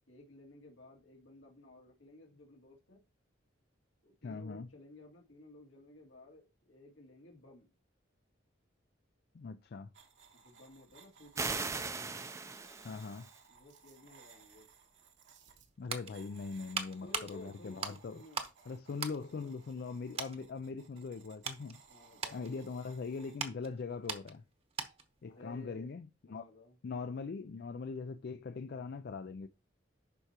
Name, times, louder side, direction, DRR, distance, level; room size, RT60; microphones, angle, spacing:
voice 1, 0.1-3.0 4.0-7.7 10.3-11.7 13.5-14.7 17.0-18.5 19.0-19.5 21.9-22.4 25.3-25.9 26.2-26.8, left 1 dB, 80° left, 2.3 m, -55 dB
voice 2, 4.2-4.7 9.3-9.9 12.8-13.3 15.8-18.2 18.7-21.8 22.3-24.4 25.2-26.5 26.8-29.5, left 4 dB, 55° left, 0.4 m, -41 dB
sound 1, 9.9-23.4, right 6 dB, 70° right, 1.2 m, -62 dB
sound 2, 11.4-13.4, right 4 dB, 15° right, 0.4 m, -38 dB
sound 3, 15.5-18.6 18.9-19.9 20.1-20.4 20.9-25.2 25.5-25.6, right 5 dB, 30° right, 0.9 m, -42 dB
11.0 x 4.6 x 2.9 m
head